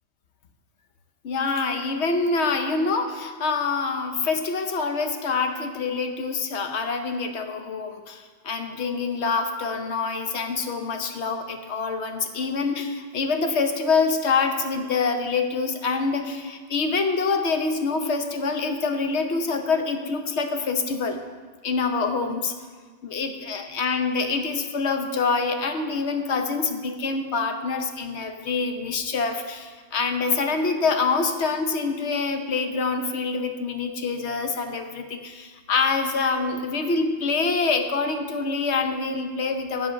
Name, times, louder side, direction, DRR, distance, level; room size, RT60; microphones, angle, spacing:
voice 1, 1.2-21.2 21.6-22.5 23.0-39.9, left 4 dB, 70° left, 6 dB, 1.1 m, -26 dB
8.3 x 7.6 x 5.7 m, 1.5 s
omnidirectional pair, 1.2 m